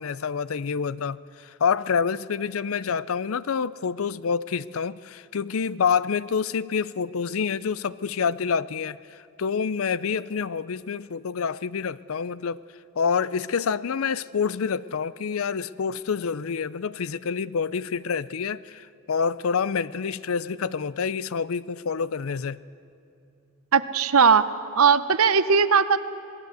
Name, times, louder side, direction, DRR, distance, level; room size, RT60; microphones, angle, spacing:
voice 1, 0.0-9.0 9.4-12.6 13.0-22.6, left 6 dB, 75° left, 18 dB, 0.5 m, -27 dB
voice 2, 23.7-24.5 24.8-26.0, right 6 dB, 85° right, 13 dB, 0.9 m, -18 dB
26.5 x 19.5 x 8.1 m, 2.6 s
head